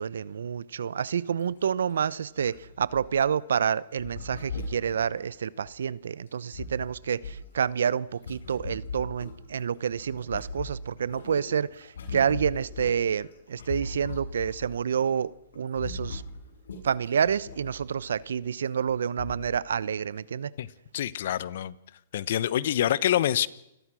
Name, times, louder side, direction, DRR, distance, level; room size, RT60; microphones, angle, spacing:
voice 1, 0.0-16.2 16.8-20.5, right 7 dB, 80° right, 0.9 m, -28 dB
sound 1, 1.4-1.5 1.8-1.9 2.5-3.4 4.0-5.7 6.3-9.6 9.9-14.7 15.1-15.3 15.5-18.3 18.9-19.0 19.2-19.6 20.1-20.2, left 3 dB, 85° left, 8.0 m, -39 dB
voice 2, 20.9-21.7 22.1-23.5, left 11 dB, 60° left, 1.1 m, -26 dB
29.0 x 21.5 x 6.4 m
hypercardioid pair, 145°, 0 cm